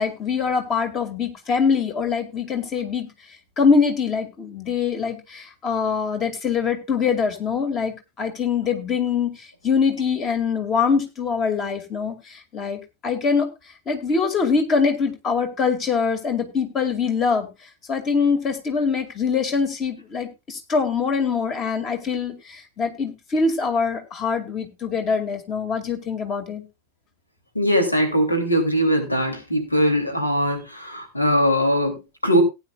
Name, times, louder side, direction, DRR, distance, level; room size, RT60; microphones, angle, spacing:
voice 1, 0.0-3.1 3.6-13.5 13.9-17.5 17.9-26.6, left 5 dB, 30° left, 7 dB, 2.4 m, -23 dB
voice 2, 27.5-32.4, equal, 85° left, 5 dB, 3.1 m, -21 dB
17.5 x 9.5 x 2.4 m, 0.24 s
figure-of-eight pair, 90°, 0 cm